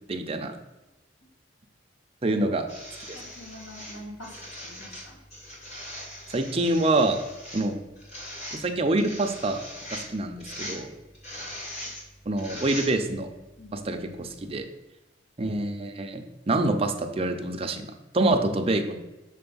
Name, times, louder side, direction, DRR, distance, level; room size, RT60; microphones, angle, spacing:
voice 1, 0.1-0.5 2.2-2.6 6.3-7.2 7.5-7.7 8.6-9.6 10.1-10.9 12.3-13.3 13.7-14.7 15.4-17.9 18.1-18.9, right 2 dB, 30° right, 5 dB, 0.6 m, -26 dB
sound 1, 2.7-13.2 14.3-14.4, left 1 dB, 35° left, 1.8 m, -40 dB
voice 2, 3.1-4.3 4.6-5.2 13.6-14.0, left 1 dB, 90° left, -3 dB, 2.1 m, -45 dB
6.4 x 3.4 x 5.4 m, 1.0 s
head